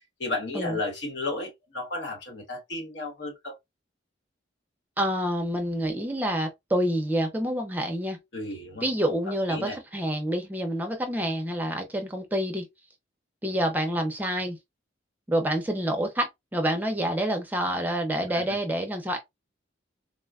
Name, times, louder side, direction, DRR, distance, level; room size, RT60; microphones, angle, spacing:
voice 1, 0.2-3.5 8.3-8.8 9.5-9.8, left 2 dB, 70° left, 1.2 m, -33 dB
voice 2, 5.0-8.2 8.8-12.7 13.4-14.6 15.3-19.2, right 1 dB, 10° right, 0.5 m, -27 dB
3.8 x 2.1 x 2.3 m
head